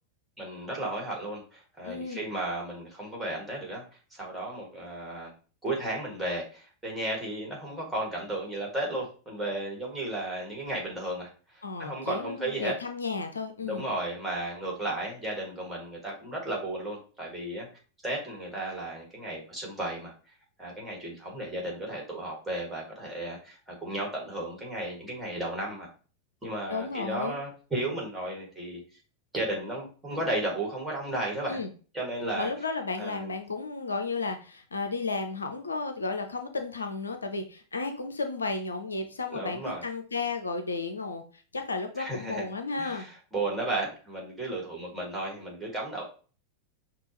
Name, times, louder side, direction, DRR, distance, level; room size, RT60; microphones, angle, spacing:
voice 1, 0.4-3.8 4.1-5.3 5.6-12.7 13.6-17.7 18.0-20.1 20.6-25.9 26.4-28.8 29.3-31.6 31.9-32.5 33.0-33.3 39.3-39.8 42.0-42.4 42.8-46.0, right 1 dB, 5° right, -3 dB, 1.9 m, -34 dB
voice 2, 1.8-2.2 11.6-13.9 26.7-27.4 31.5-31.7 32.3-43.1, left 3 dB, 75° left, 7 dB, 0.5 m, -33 dB
6.1 x 2.4 x 2.9 m, 0.37 s
figure-of-eight pair, 90°, 0 cm